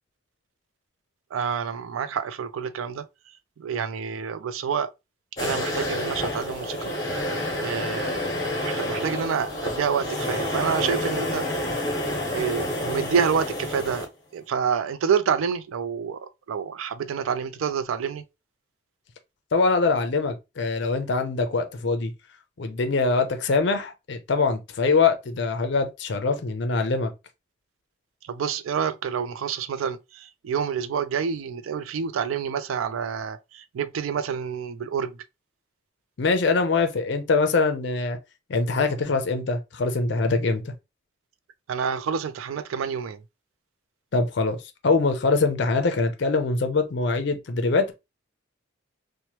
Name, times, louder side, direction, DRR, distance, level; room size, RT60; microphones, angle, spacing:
voice 1, 1.3-3.0 3.6-4.9 5.4-6.9 7.6-8.3 8.6-11.4 12.3-18.2 28.3-35.2 41.7-43.2, right 7 dB, 90° right, 0.3 m, -28 dB
sound 1, 5.4-14.0, left 1 dB, 20° left, 1.0 m, -29 dB
voice 2, 19.5-22.1 22.6-27.1 36.2-38.2 38.5-40.7 44.1-47.9, left 3 dB, 60° left, 0.5 m, -23 dB
2.9 x 2.1 x 2.8 m
head